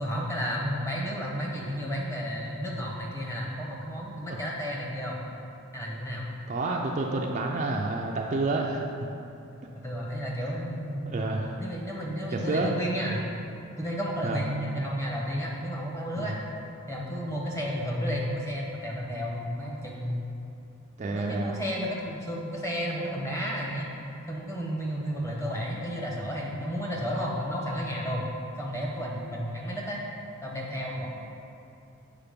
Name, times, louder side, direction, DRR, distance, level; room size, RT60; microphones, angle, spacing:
voice 1, 0.0-5.2 5.7-6.2 9.8-11.2 11.6-13.3 13.8-16.3 16.9-20.2 21.1-23.9 24.3-28.3 28.6-30.0 30.4-31.1, equal, 15° left, -3 dB, 1.0 m, -32 dB
voice 2, 6.5-9.1 11.1-11.6 12.3-12.7 14.2-14.4 16.2-16.4 21.0-21.5, right 2 dB, 35° right, 0 dB, 0.4 m, -29 dB
6.9 x 5.0 x 5.2 m, 2.7 s
head